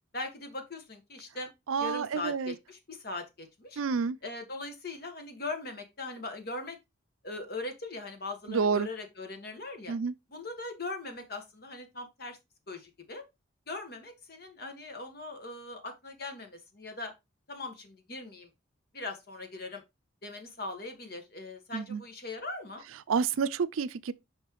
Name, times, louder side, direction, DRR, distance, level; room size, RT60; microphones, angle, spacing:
voice 1, 0.1-1.5 1.8-3.8 4.2-6.8 7.2-9.9 10.3-12.4 12.7-13.2 13.7-17.1 17.5-18.5 18.9-19.8 20.2-22.8, left 2 dB, 50° left, 1.5 m, -40 dB
voice 2, 1.7-2.5 3.8-4.2 8.5-8.9 9.9-10.1 21.7-22.0 23.1-24.1, right 5 dB, 85° right, 0.5 m, -29 dB
5.8 x 5.4 x 3.1 m
head